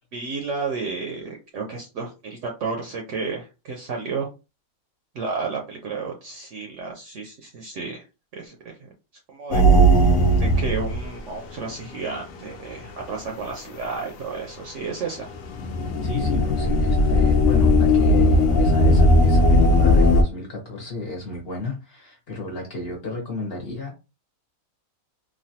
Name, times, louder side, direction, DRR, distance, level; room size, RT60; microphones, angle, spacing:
voice 1, 0.1-4.3 5.1-8.1 8.3-8.9 9.3-15.3, right 4 dB, 65° right, 0.8 m, -32 dB
sound 1, 9.5-11.5 11.8-11.9 12.8-13.0 15.2-20.2, equal, 70° left, 1.0 m, -17 dB
voice 2, 16.0-23.9, left 3 dB, 45° left, 1.1 m, -32 dB
3.1 x 2.3 x 2.7 m
omnidirectional pair, 1.5 m